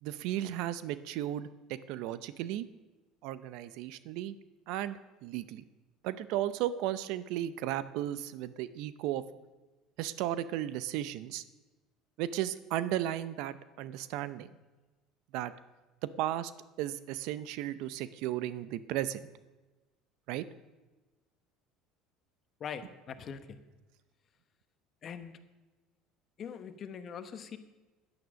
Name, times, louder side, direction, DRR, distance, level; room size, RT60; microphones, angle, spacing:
voice 1, 0.0-2.7 3.2-4.3 4.7-5.6 6.0-9.2 10.0-11.4 12.2-14.5 15.3-15.5 16.0-16.5 16.8-19.3 20.3-20.4, right 12 dB, 70° right, 15 dB, 0.6 m, -35 dB
voice 2, 22.6-23.6 25.0-25.4 26.4-27.6, left 7 dB, 45° left, 10 dB, 1.1 m, -42 dB
10.5 x 9.8 x 6.3 m, 1.2 s
supercardioid pair, 95°, 0 cm